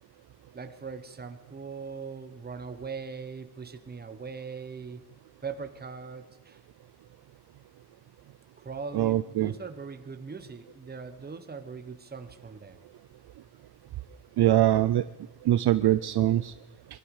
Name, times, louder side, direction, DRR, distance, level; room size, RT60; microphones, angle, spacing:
voice 1, 0.5-5.0 5.4-6.6 8.6-12.8, right 5 dB, 20° right, 8 dB, 1.0 m, -40 dB
voice 2, 8.9-9.5 14.4-15.0 15.4-16.5, right 13 dB, 60° right, 14 dB, 0.5 m, -23 dB
23.0 x 12.0 x 4.9 m, 1.1 s
wide cardioid pair, 165°, 46 cm